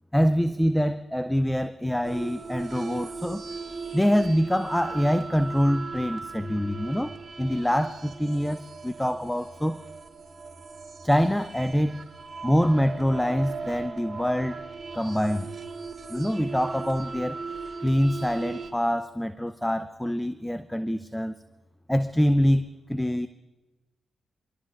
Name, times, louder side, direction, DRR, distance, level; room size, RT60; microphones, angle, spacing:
voice 1, 0.1-3.4 3.9-9.8 11.0-12.0 12.4-14.6 14.9-15.5 16.1-17.4 17.8-21.4 21.9-23.3, equal, 5° left, 12 dB, 0.6 m, -25 dB
sound 1, 2.0-18.7, right 4 dB, 55° right, 1.8 m, -38 dB
27.0 x 12.5 x 2.5 m, 1.1 s
supercardioid pair, 45°, 0 cm